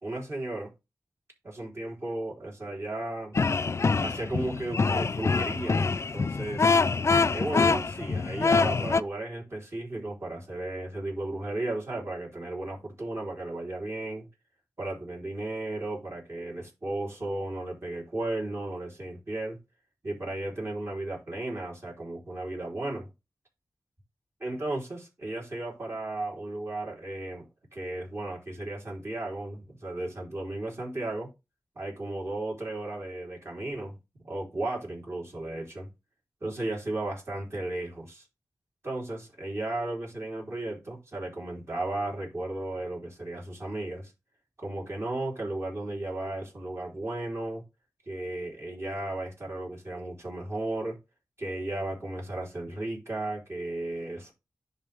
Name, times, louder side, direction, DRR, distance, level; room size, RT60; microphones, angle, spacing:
voice 1, 0.0-0.7 1.4-3.4 4.0-5.9 6.1-6.8 7.3-14.3 14.8-19.6 20.0-23.1 24.4-31.3 31.8-34.0 34.3-35.9 36.4-38.2 38.8-44.1 44.6-47.6 48.1-51.0 51.4-54.3, right 2 dB, 45° right, 3.7 m, -35 dB
sound 1, 3.3-9.0, left 4 dB, 45° left, 0.3 m, -25 dB
10.5 x 3.7 x 3.5 m
wide cardioid pair, 65°, 7 cm